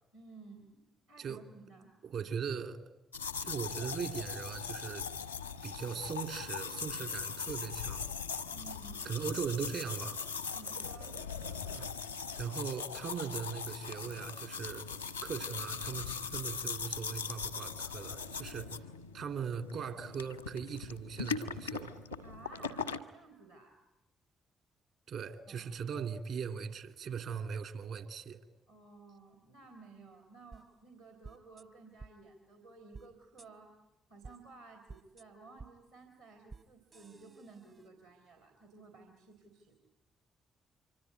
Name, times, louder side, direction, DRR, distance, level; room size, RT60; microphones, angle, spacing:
voice 1, 0.1-1.9 8.5-9.0 10.5-11.1 22.2-23.8 25.5-25.7 28.7-33.7 34.1-39.8, right 3 dB, 75° right, 3 dB, 3.2 m, -55 dB
voice 2, 2.0-2.8 3.4-5.1 5.6-8.1 9.0-10.2 11.5-11.9 12.3-14.9 15.2-18.8 19.1-21.9 25.1-28.4, right 6 dB, 60° right, 7 dB, 2.7 m, -39 dB
sound 1, 3.1-23.0, left 5 dB, 90° left, 0.9 m, -40 dB
sound 2, 30.5-30.6 31.2-31.6 32.0-32.1 32.9-33.1 33.4-33.5 34.2-34.4 34.9-35.2 35.6-35.7 36.5-36.6 36.9-37.9, right 4 dB, 40° right, 1.0 m, -51 dB
25.5 x 25.0 x 9.4 m, 0.94 s
figure-of-eight pair, 40°, 0 cm